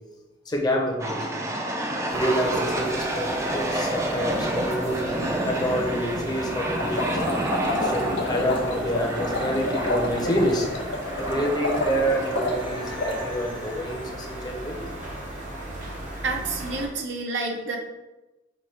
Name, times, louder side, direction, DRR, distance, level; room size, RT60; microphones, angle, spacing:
voice 1, 0.5-1.4 2.1-7.0 7.8-10.7 11.2-14.8, equal, 25° left, 0 dB, 0.6 m, -27 dB
sound 1, 1.0-14.1, right 1 dB, 15° right, 0.4 m, -30 dB
sound 2, 2.1-16.9, right 1 dB, 45° right, 1.0 m, -37 dB
sound 3, 6.8-13.3, left 2 dB, 85° left, 0.6 m, -29 dB
voice 2, 16.2-17.8, right 3 dB, 75° right, 1 dB, 0.7 m, -29 dB
5.8 x 2.3 x 3.2 m, 1.1 s
head